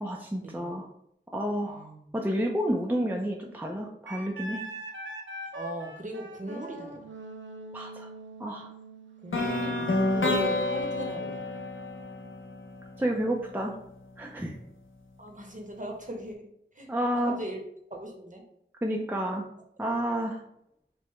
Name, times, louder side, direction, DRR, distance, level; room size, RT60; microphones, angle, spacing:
voice 1, 0.0-0.9 1.3-4.6 7.7-8.1 8.4-8.7 13.0-13.7 14.2-14.6 16.9-17.3 18.8-19.5 19.8-20.4, equal, 10° right, 0 dB, 0.4 m, -30 dB
voice 2, 1.7-2.1 5.5-7.0 9.2-11.5 15.2-16.5 16.7-16.9 17.1-17.6 17.9-18.4, right 1 dB, 40° right, 2 dB, 0.8 m, -38 dB
Wind instrument woodwind instrument, 4.1-9.4, right 2 dB, 65° right, 0.5 m, -42 dB
sound 1, 9.3-13.3, left 2 dB, 75° left, 0.6 m, -29 dB
4.6 x 2.1 x 3.1 m, 0.75 s
wide cardioid pair, 45°, 20 cm